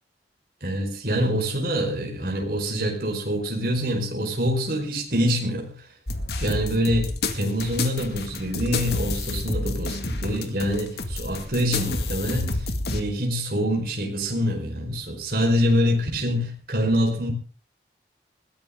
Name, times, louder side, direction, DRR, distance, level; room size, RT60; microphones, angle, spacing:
voice 1, 0.6-5.7 6.4-12.6 12.9-17.3, equal, 55° right, 1 dB, 5.0 m, -25 dB
sound 1, 6.1-13.0, left 2 dB, 65° left, 2.1 m, -29 dB
20.5 x 17.0 x 3.8 m, 0.37 s
head